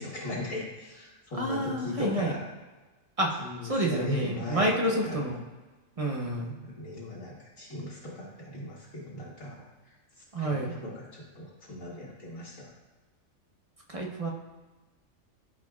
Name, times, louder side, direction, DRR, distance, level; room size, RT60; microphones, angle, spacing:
voice 1, 0.0-2.5 3.4-5.2 6.4-10.0 10.4-12.7, left 1 dB, 80° left, -9 dB, 1.9 m, -38 dB
voice 2, 1.4-2.3 3.2-5.4 6.0-6.5 10.3-10.7 13.9-14.3, right 1 dB, 30° right, 0 dB, 0.9 m, -29 dB
13.0 x 5.0 x 2.4 m, 1.2 s
omnidirectional pair, 1.4 m